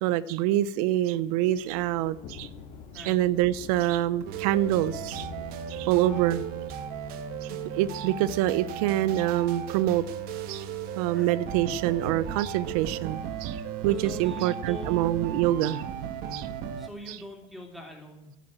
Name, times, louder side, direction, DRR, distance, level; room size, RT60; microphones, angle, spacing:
voice 1, 0.0-2.5 2.9-5.3 5.7-6.4 7.4-7.5 7.7-10.1 10.5-10.7 11.0-15.8 16.3-16.5 17.1-17.2, right 13 dB, 80° right, 0.6 m, -26 dB
Thunder, 1.5-17.4, left 7 dB, 50° left, 2.0 m, -49 dB
sound 1, 4.2-16.9, right 9 dB, 55° right, 1.4 m, -36 dB
voice 2, 5.9-6.2 11.1-11.3 13.9-15.1 16.7-18.3, equal, ahead, 3.5 m, -43 dB
12.5 x 9.3 x 8.9 m
cardioid pair, 150°, 18 cm